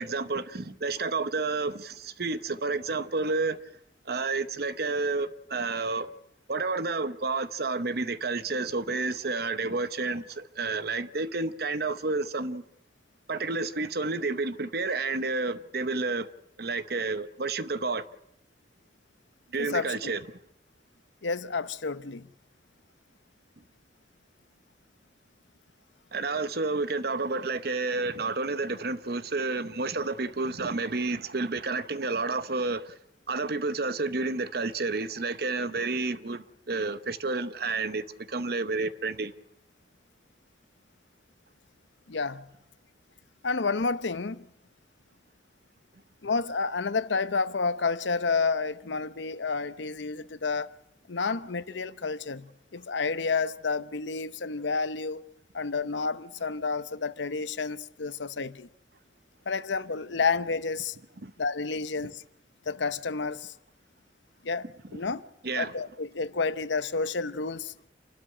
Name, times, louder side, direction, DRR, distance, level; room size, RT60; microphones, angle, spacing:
voice 1, 0.0-3.6 4.1-6.1 6.5-12.6 13.3-16.3 16.6-18.0 19.5-20.2 26.1-32.9 33.3-39.3 61.2-61.3 65.4-65.7, right 3 dB, 55° right, 0.9 m, -30 dB
voice 2, 19.6-20.1 21.2-22.3 42.1-42.4 43.4-44.5 46.2-50.7 51.1-55.2 55.5-58.7 59.5-61.0 61.4-62.2 62.7-63.5 64.4-65.2 65.5-67.7, left 4 dB, 85° left, 0.9 m, -30 dB
27.5 x 12.5 x 9.9 m
head